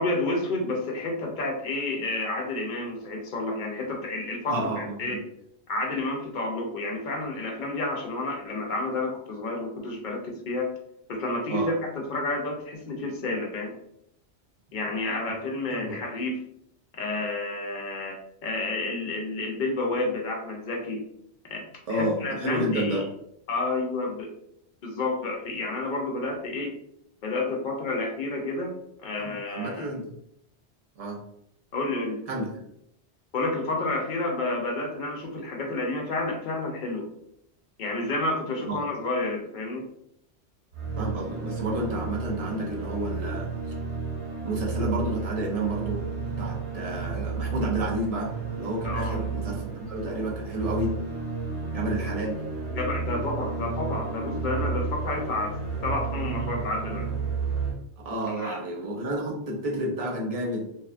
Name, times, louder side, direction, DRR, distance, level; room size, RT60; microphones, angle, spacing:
voice 1, 0.0-5.2 5.7-10.7 11.1-13.7 14.7-16.4 16.9-18.2 18.4-21.0 21.4-21.6 21.9-23.0 23.5-24.3 24.8-26.7 27.2-28.7 29.0-29.9 31.7-32.2 33.3-37.0 37.8-39.9 48.8-49.2 52.7-55.5 55.8-57.1 58.3-58.6, left 2 dB, 60° left, 1 dB, 0.6 m, -30 dB
voice 2, 4.5-5.2 11.5-11.7 15.7-16.0 21.9-23.1 29.2-30.2 31.0-31.2 32.3-32.5 38.7-38.8 41.0-43.5 44.4-46.0 46.4-50.9 51.7-52.4 55.1-55.2 58.0-60.7, right 1 dB, 45° right, -1 dB, 0.5 m, -30 dB
sound 1, 40.7-57.7, right 4 dB, 75° right, 1.3 m, -32 dB
2.7 x 2.2 x 2.4 m, 0.75 s
omnidirectional pair, 1.2 m